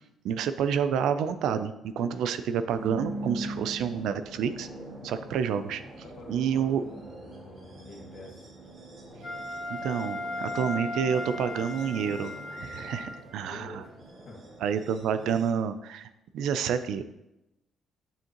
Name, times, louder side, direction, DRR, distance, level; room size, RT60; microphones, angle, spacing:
voice 1, 0.2-4.7 5.0-5.8 6.3-6.8 9.7-13.8 14.6-16.1 16.3-17.0, right 7 dB, 85° right, 11 dB, 0.4 m, -29 dB
sound 1, 2.7-15.5, right 1 dB, 60° right, 2.3 m, -43 dB
voice 2, 6.0-8.5 13.4-14.4, left 2 dB, 70° left, -1 dB, 1.8 m, -47 dB
Wind instrument woodwind instrument, 9.2-13.5, left 2 dB, 50° left, 2.2 m, -37 dB
7.1 x 6.3 x 3.0 m, 0.91 s
cardioid pair, 90°, 0 cm